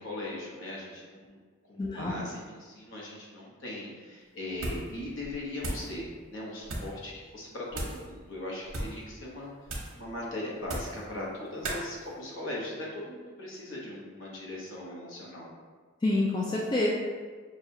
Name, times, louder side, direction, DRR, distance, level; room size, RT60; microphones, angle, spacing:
voice 1, 0.0-1.4 1.7-9.5 9.9-15.5, left 1 dB, 70° left, -4 dB, 1.1 m, -39 dB
voice 2, 1.8-2.2 16.0-16.9, left 2 dB, 20° left, -4 dB, 0.4 m, -27 dB
sound 1, 4.5-4.9 5.2-5.9 6.6-7.0 7.7-8.1 8.6-9.0 9.7-10.0 10.6-11.0 11.6-11.8, right 1 dB, 80° right, 1.0 m, -36 dB
6.2 x 2.4 x 2.7 m, 1.5 s
head